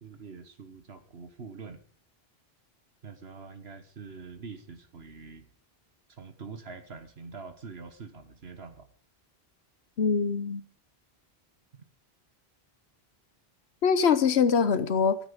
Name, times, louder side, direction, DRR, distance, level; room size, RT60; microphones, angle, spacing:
voice 1, 0.0-1.8 3.0-5.4 6.1-8.9, right 4 dB, 75° right, 9 dB, 1.7 m, -45 dB
voice 2, 10.0-10.6 13.8-15.2, left 6 dB, 85° left, 14 dB, 1.2 m, -23 dB
14.5 x 14.0 x 5.2 m, 0.43 s
omnidirectional pair, 1.1 m